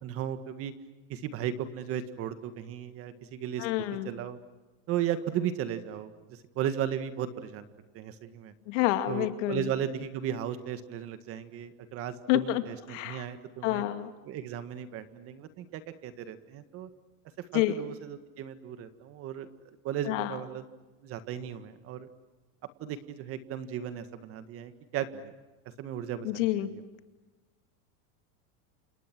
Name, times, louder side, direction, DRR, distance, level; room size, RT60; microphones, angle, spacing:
voice 1, 0.0-0.7 1.1-3.7 4.0-4.4 4.9-7.7 7.9-8.5 9.1-13.8 14.3-16.9 17.4-19.5 19.8-20.6 21.0-22.1 22.8-25.3 25.8-26.7, right 10 dB, 35° right, 11 dB, 1.8 m, -35 dB
voice 2, 3.6-4.1 8.7-9.7 12.3-12.6 12.9-13.3 13.6-14.1 17.5-17.8 20.1-20.3 26.2-26.7, left 15 dB, 60° left, 9 dB, 2.4 m, -28 dB
30.0 x 28.0 x 6.2 m, 1.2 s
supercardioid pair, 170°, 41 cm